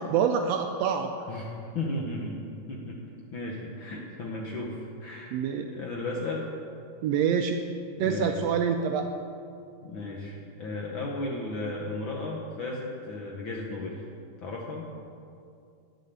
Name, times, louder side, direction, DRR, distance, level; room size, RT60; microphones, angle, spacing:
voice 1, 0.0-1.1 5.3-5.7 7.0-7.6 8.0-9.1, right 7 dB, 80° right, 5 dB, 1.5 m, -26 dB
voice 2, 1.3-2.4 2.7-3.0 3.3-6.5 8.0-8.4 9.8-14.0 14.4-14.9, left 2 dB, 65° left, -2 dB, 1.3 m, -35 dB
9.9 x 6.6 x 8.1 m, 2.4 s
omnidirectional pair, 3.3 m